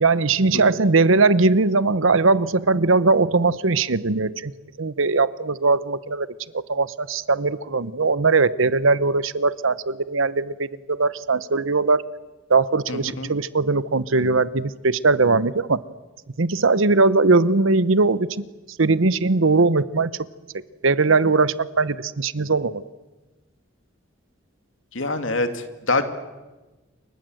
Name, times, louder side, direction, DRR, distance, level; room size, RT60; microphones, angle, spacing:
voice 1, 0.0-4.5 4.8-6.3 6.5-12.0 12.5-15.8 16.4-18.5 18.8-20.1 20.8-22.8, right 3 dB, 85° right, 17 dB, 1.0 m, -20 dB
voice 2, 12.9-13.3 24.9-26.0, left 2 dB, 80° left, 8 dB, 2.5 m, -25 dB
28.5 x 24.5 x 7.9 m, 1.2 s
head